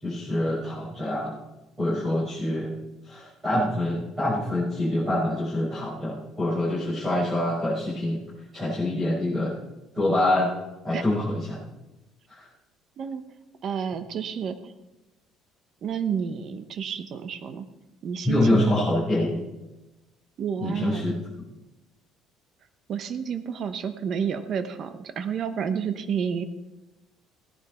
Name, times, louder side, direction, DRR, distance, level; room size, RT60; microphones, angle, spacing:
voice 1, 0.0-1.3 1.8-2.7 3.0-8.2 8.5-9.6 9.9-10.5 10.8-11.6 12.3-12.5 18.2-19.4 20.6-21.1, left 1 dB, 10° right, -10 dB, 5.6 m, -25 dB
voice 2, 13.6-14.7 15.8-17.7 18.0-18.6 20.4-21.0 22.9-26.4, right 7 dB, 40° right, 10 dB, 0.9 m, -30 dB
18.0 x 10.5 x 4.4 m, 1.0 s
cardioid pair, 175°, 0 cm